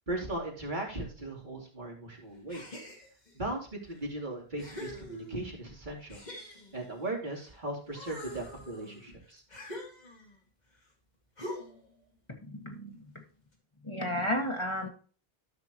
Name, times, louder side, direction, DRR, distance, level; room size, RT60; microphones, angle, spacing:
voice 1, 0.1-2.6 3.3-6.2 6.7-9.4, right 2 dB, 50° right, -2 dB, 3.1 m, -37 dB
sound 1, 2.5-3.4 4.0-4.1 4.6-5.6 6.1-7.5 7.9-10.4 11.4-11.9, left 1 dB, 45° left, 2.2 m, -44 dB
voice 2, 12.4-12.9 13.8-14.9, equal, 30° left, 2 dB, 1.7 m, -32 dB
13.0 x 5.9 x 3.0 m, 0.38 s
omnidirectional pair, 1.0 m